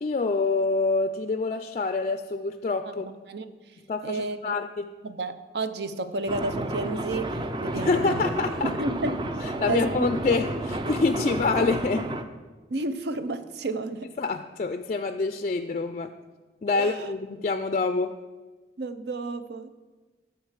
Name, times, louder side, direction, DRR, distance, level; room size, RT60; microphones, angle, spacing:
voice 1, 0.0-3.1 3.9-4.9 7.7-8.7 9.4-12.1 14.2-16.1 16.6-18.1, left 3 dB, 40° left, 8 dB, 0.4 m, -26 dB
voice 2, 4.0-4.5 5.0-8.2 8.6-9.3 9.7-10.1 11.3-11.4 12.7-14.2 16.7-17.1 18.8-19.7, right 2 dB, 65° right, 11 dB, 0.6 m, -31 dB
sound 1, 6.3-12.2, right 1 dB, 25° right, 0.5 m, -31 dB
12.5 x 4.7 x 7.4 m, 1.3 s
head